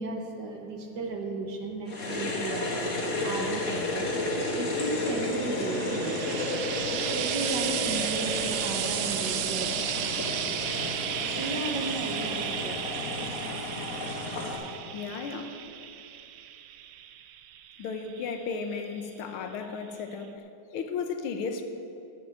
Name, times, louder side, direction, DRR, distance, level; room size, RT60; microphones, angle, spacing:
voice 1, 0.0-2.8 3.2-4.1 4.5-6.2 7.1-9.7 11.3-13.3, right 3 dB, 60° right, 3 dB, 1.6 m, -35 dB
sound 1, 1.9-14.6, left 1 dB, 40° left, 2.0 m, -32 dB
Frying (food), 5.5-18.9 19.9-20.0, right 11 dB, 75° right, 1.3 m, -34 dB
voice 2, 14.9-15.6 17.8-21.6, left 5 dB, 85° left, 7 dB, 1.7 m, -35 dB
11.5 x 7.0 x 7.6 m, 2.7 s
omnidirectional pair, 2.3 m